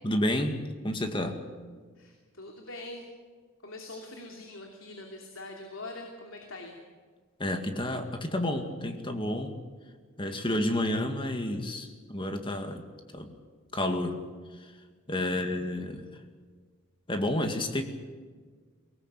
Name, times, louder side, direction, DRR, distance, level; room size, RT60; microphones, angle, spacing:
voice 1, 0.0-0.6 0.8-1.4 7.4-9.6 10.2-12.8 13.1-13.3 13.7-14.2 14.6-14.7 15.1-16.1 17.1-17.8, left 1 dB, 25° left, 6 dB, 2.1 m, -30 dB
voice 2, 2.0-3.1 3.6-6.8 15.3-15.7, left 2 dB, 70° left, 2 dB, 3.0 m, -43 dB
23.0 x 18.5 x 8.4 m, 1.5 s
head